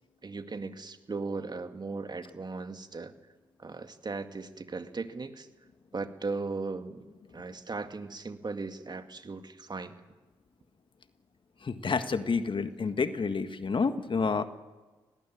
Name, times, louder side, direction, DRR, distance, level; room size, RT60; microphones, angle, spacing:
voice 1, 0.2-3.1 3.6-5.5 5.9-7.1 7.3-10.0, right 3 dB, 35° right, 8 dB, 2.1 m, -37 dB
voice 2, 11.6-14.4, left 4 dB, 45° left, 10 dB, 1.7 m, -29 dB
23.0 x 19.0 x 8.8 m, 1.2 s
hypercardioid pair, 40°, 12 cm